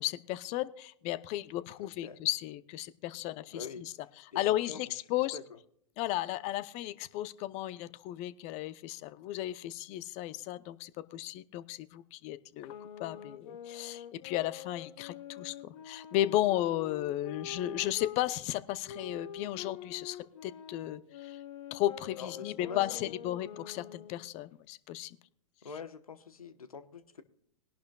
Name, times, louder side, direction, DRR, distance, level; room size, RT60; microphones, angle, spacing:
voice 1, 0.0-3.9 4.4-5.4 6.0-12.7 13.0-21.4 21.7-25.2, left 14 dB, 40° left, 17 dB, 0.7 m, -34 dB
voice 2, 1.8-2.2 3.5-3.9 4.3-4.8 5.3-5.6 22.2-23.4 25.6-27.2, left 5 dB, 90° left, 12 dB, 1.1 m, -45 dB
sound 1, 12.6-18.2 18.9-24.3, left 8 dB, 60° left, 1.5 m, -46 dB
20.5 x 11.5 x 2.3 m, 0.68 s
hypercardioid pair, 110°, 18 cm